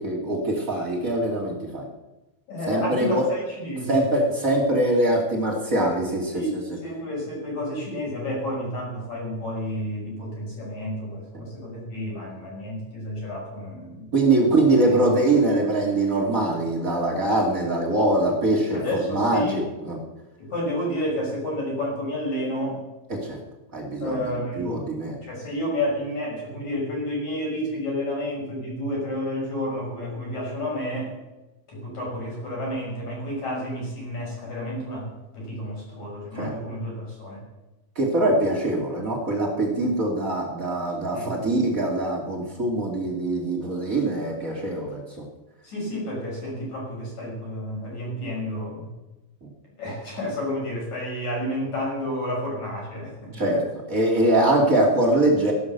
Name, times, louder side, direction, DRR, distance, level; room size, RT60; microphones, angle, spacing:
voice 1, 0.0-1.9 2.7-3.3 3.9-6.4 11.3-11.4 14.1-20.0 23.1-23.4 23.7-25.2 36.3-36.5 37.9-45.3 49.4-49.5 53.3-53.6 53.9-55.5, right 1 dB, 35° right, -1 dB, 1.4 m, -23 dB
voice 2, 2.5-4.0 6.3-14.1 18.7-19.6 20.4-22.8 24.0-24.8 25.2-31.1 31.7-35.1 35.3-37.4 41.1-41.3 45.6-48.9 49.8-53.6, left 1 dB, 35° left, -2 dB, 7.2 m, -30 dB
16.5 x 11.5 x 6.8 m, 1.0 s
omnidirectional pair, 6.0 m